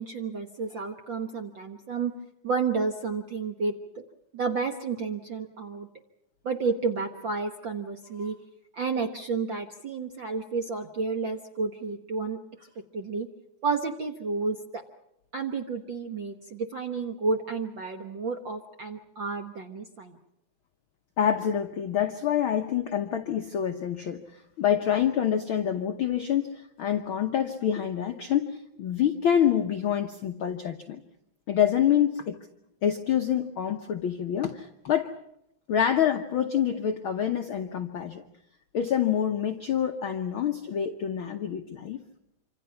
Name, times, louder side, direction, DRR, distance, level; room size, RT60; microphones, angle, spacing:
voice 1, 0.0-2.1 2.4-3.7 4.3-5.9 6.4-8.4 8.7-12.4 12.9-13.3 13.6-14.8 15.3-20.2, right 4 dB, 60° right, 5 dB, 1.2 m, -31 dB
voice 2, 21.2-31.0 31.5-32.4 32.8-35.1 35.7-38.2 38.7-42.0, left 9 dB, 70° left, 6 dB, 1.2 m, -26 dB
27.0 x 26.0 x 5.7 m, 0.78 s
omnidirectional pair, 3.7 m